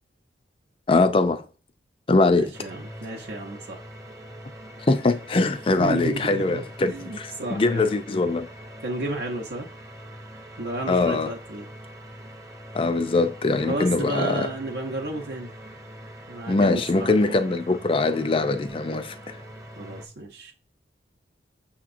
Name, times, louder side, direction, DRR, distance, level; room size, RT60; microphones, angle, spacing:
voice 1, 0.9-1.4 2.1-2.5 4.9-8.5 10.9-11.3 12.7-14.5 16.5-19.4, left 3 dB, 30° left, 0.4 m, -22 dB
voice 2, 2.3-3.8 5.8-8.0 8.8-9.7 10.6-11.7 13.5-15.5 16.3-17.4 19.8-20.5, right 2 dB, 75° right, 0.7 m, -32 dB
sound 1, 2.5-20.1, equal, 20° right, 0.6 m, -43 dB
6.6 x 2.9 x 2.5 m
head